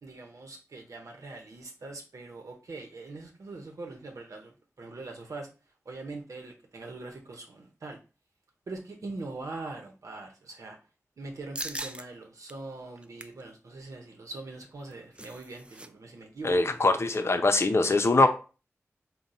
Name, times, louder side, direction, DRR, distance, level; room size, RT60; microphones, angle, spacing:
voice 1, 0.0-5.5 5.8-8.0 8.7-10.8 11.2-16.7 18.2-18.3, right 3 dB, 80° right, 0.8 m, -42 dB
sound 1, 11.6-12.1 12.5-12.6 13.0-13.4 14.7-15.9 16.1-16.3 16.6-16.9, right 1 dB, 20° right, 0.4 m, -40 dB
voice 2, 16.4-18.3, left 2 dB, 55° left, 0.6 m, -22 dB
3.8 x 2.3 x 4.2 m
cardioid pair, 40°, 5 cm